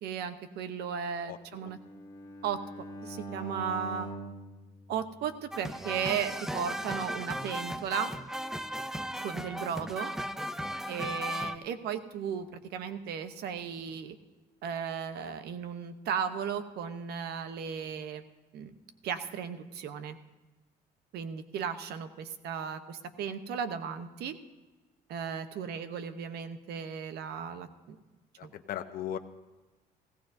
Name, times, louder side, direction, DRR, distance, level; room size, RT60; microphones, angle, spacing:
voice 1, 0.0-1.8 2.4-2.6 3.0-4.1 4.9-8.1 9.2-10.1 10.9-14.2 14.6-18.3 18.5-18.7 19.0-20.2 21.1-24.4 25.1-28.0 28.4-28.5, right 7 dB, 70° right, 10 dB, 0.9 m, -35 dB
voice 2, 1.3-1.7 28.4-29.2, left 10 dB, 60° left, 7 dB, 0.8 m, -38 dB
Bowed string instrument, 1.6-5.8, right 2 dB, 25° left, 1.7 m, -44 dB
sound 1, 5.5-11.6, equal, 5° right, 0.5 m, -36 dB
17.5 x 16.5 x 2.6 m, 1.2 s
cardioid pair, 110°, 17 cm